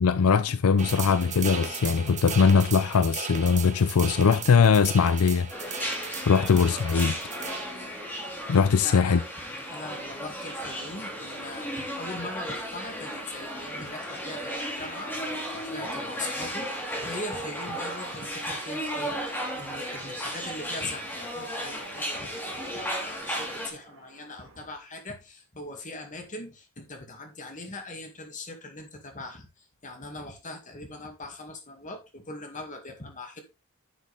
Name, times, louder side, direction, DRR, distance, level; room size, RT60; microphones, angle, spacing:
voice 1, 0.0-7.2 8.5-9.2, left 5 dB, 75° left, 0.5 m, -21 dB
sound 1, 0.8-7.6, right 6 dB, 35° right, 1.3 m, -37 dB
sound 2, 5.5-23.7, equal, 10° left, 2.6 m, -35 dB
voice 2, 8.8-9.3 9.7-33.4, left 2 dB, 35° left, 2.1 m, -41 dB
sound 3, 14.1-24.7, right 3 dB, 60° right, 2.4 m, -52 dB
10.5 x 6.3 x 3.5 m
head